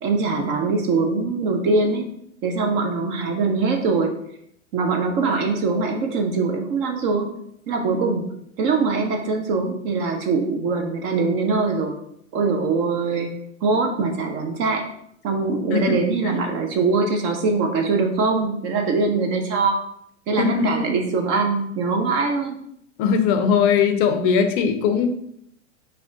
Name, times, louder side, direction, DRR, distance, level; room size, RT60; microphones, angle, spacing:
voice 1, 0.0-2.1 2.4-4.1 4.7-7.3 7.7-8.3 8.6-11.9 12.3-13.3 13.6-14.8 15.2-19.8 20.3-22.6, right 4 dB, 35° right, 4 dB, 0.4 m, -22 dB
voice 2, 20.4-20.8 23.0-25.1, left 6 dB, 45° left, 7 dB, 0.5 m, -19 dB
3.5 x 2.2 x 3.6 m, 0.73 s
hypercardioid pair, 110°, 40 cm